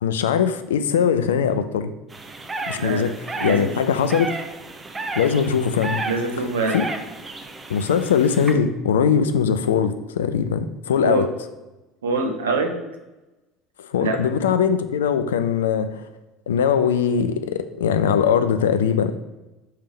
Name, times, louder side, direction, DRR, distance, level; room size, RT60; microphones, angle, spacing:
voice 1, 0.0-1.9 2.7-3.1 3.4-4.3 5.2-6.0 6.7-6.8 7.7-11.3 13.8-16.1 16.5-19.1, left 7 dB, 70° left, 11 dB, 0.4 m, -21 dB
sound 1, 2.1-8.5, right 2 dB, 20° right, 0.7 m, -33 dB
voice 2, 2.8-3.1 3.4-3.7 6.1-6.8 11.0-11.3 12.0-12.7 14.0-14.2, right 3 dB, 70° right, 2 dB, 0.8 m, -24 dB
5.5 x 3.5 x 5.0 m, 1.1 s
figure-of-eight pair, 65°, 0 cm